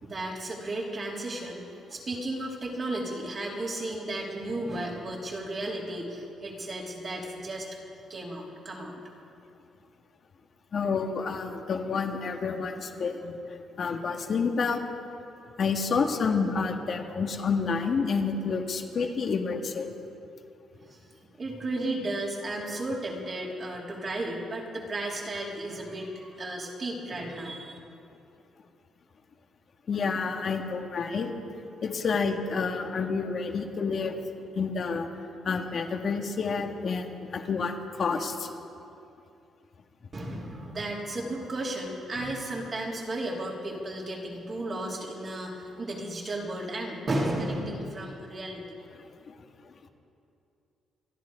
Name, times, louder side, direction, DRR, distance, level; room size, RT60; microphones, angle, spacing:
voice 1, 0.0-1.6 1.9-7.7 8.1-9.0 20.7-21.1 21.4-27.8 40.1-48.6, right 1 dB, 40° right, -3 dB, 3.5 m, -34 dB
voice 2, 10.7-14.8 15.6-19.9 29.9-31.3 31.8-34.2 34.5-35.1 35.4-38.5 42.2-42.3 49.3-49.4, left 5 dB, 50° left, 3 dB, 1.8 m, -29 dB
27.0 x 10.5 x 5.1 m, 2.6 s
cardioid pair, 90°, 0 cm